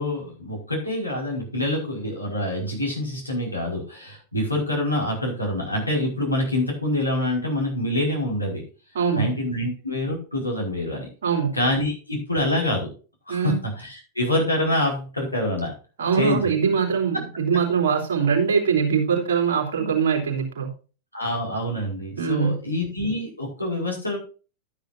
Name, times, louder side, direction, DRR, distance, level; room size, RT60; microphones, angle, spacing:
voice 1, 0.0-8.6 9.1-11.1 11.5-12.9 13.3-15.7 16.2-16.5 19.8-19.9 21.1-24.2, left 1 dB, 85° left, -1 dB, 5.2 m, -26 dB
voice 2, 8.9-9.3 11.2-11.6 13.3-13.6 16.0-20.7 22.2-22.6, right 6 dB, 60° right, 2 dB, 3.4 m, -22 dB
12.0 x 10.0 x 2.7 m, 0.35 s
figure-of-eight pair, 90°, 0 cm